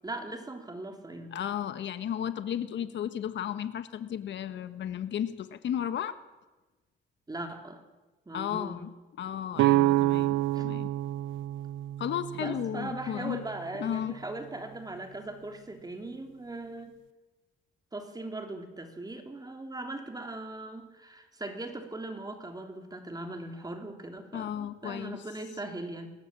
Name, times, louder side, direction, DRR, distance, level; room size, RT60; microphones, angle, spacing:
voice 1, 0.0-1.3 7.3-7.8 8.2-8.8 10.5-10.7 12.3-17.0 17.9-26.1, right 2 dB, 20° right, 5 dB, 3.2 m, -39 dB
voice 2, 1.3-6.2 8.3-8.9 9.2-10.9 12.0-13.4 13.8-14.1 24.3-25.2, left 9 dB, 65° left, 11 dB, 1.3 m, -34 dB
sound 1, 9.6-13.4, right 16 dB, 80° right, 0.6 m, -27 dB
21.5 x 17.5 x 7.5 m, 1.2 s
cardioid pair, 90°, 20 cm